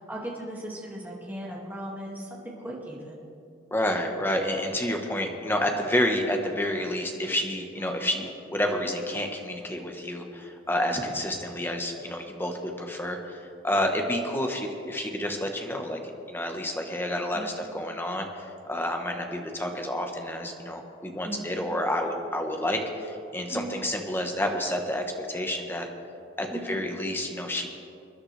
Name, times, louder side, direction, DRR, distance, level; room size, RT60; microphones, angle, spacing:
voice 1, 0.0-3.2 7.8-8.0 10.9-11.1 17.3-17.5 21.2-21.5 23.5-23.7 26.5-26.7, right 1 dB, 10° right, -4 dB, 2.2 m, -38 dB
voice 2, 3.7-25.9 26.4-27.7, left 1 dB, 10° left, 3 dB, 1.2 m, -29 dB
23.5 x 10.5 x 3.4 m, 2.6 s
head